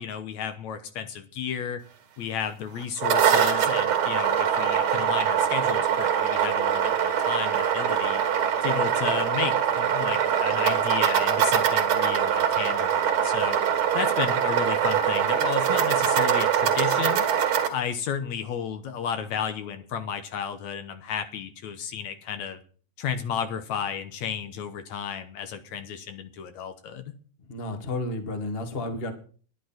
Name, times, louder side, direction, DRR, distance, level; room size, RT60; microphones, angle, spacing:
voice 1, 0.0-1.8 2.2-8.2 8.6-13.6 13.9-17.3 17.7-22.6 23.0-27.1, left 7 dB, 75° left, 9 dB, 2.2 m, -33 dB
sound 1, 2.8-17.7, right 8 dB, 65° right, 3.2 m, -23 dB
voice 2, 27.5-29.1, left 2 dB, 25° left, 7 dB, 1.5 m, -31 dB
11.5 x 10.5 x 5.8 m, 0.43 s
omnidirectional pair, 3.5 m